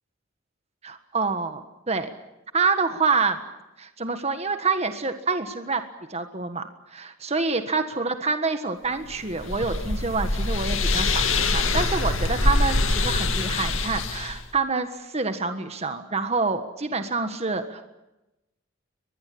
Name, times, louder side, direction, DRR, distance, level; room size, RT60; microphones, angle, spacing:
voice 1, 0.8-2.1 2.5-3.4 3.8-5.8 6.1-17.8, right 4 dB, 30° right, 8 dB, 1.5 m, -27 dB
sound 1, 9.1-14.4, left 2 dB, 70° left, 2.6 m, -24 dB
23.5 x 21.0 x 8.6 m, 0.95 s
head